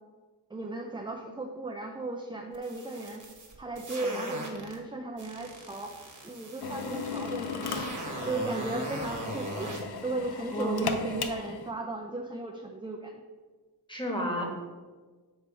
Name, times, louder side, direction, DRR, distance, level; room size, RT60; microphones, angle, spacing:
voice 1, 0.5-3.2 3.6-5.9 6.2-7.9 8.2-9.7 10.0-13.2, right 2 dB, 15° right, 2 dB, 0.4 m, -36 dB
sound 1, 2.5-4.8 5.2-9.8, right 2 dB, 45° right, 1.2 m, -40 dB
Drill, 6.6-11.7, left 5 dB, 70° left, 0.6 m, -37 dB
voice 2, 10.5-10.9 13.9-14.5, right 1 dB, 10° left, 0 dB, 1.2 m, -30 dB
6.8 x 3.2 x 4.7 m, 1.4 s
wide cardioid pair, 65°, 40 cm